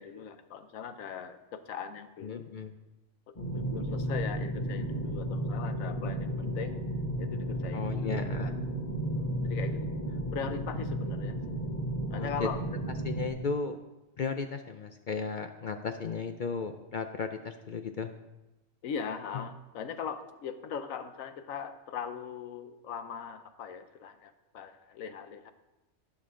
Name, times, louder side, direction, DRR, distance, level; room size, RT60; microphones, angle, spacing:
voice 1, 0.0-2.5 3.5-6.8 7.2-8.5 9.1-9.9 10.3-11.4 12.1-12.6 18.8-25.5, left 7 dB, 90° left, 10 dB, 1.2 m, -40 dB
voice 2, 2.2-2.7 6.4-6.6 7.7-8.5 12.2-13.8 14.2-18.1 19.3-19.5, left 5 dB, 60° left, 7 dB, 0.5 m, -35 dB
sound 1, 3.4-13.3, right 1 dB, 30° left, 1.6 m, -33 dB
17.5 x 6.0 x 3.7 m, 1.0 s
omnidirectional pair, 1.4 m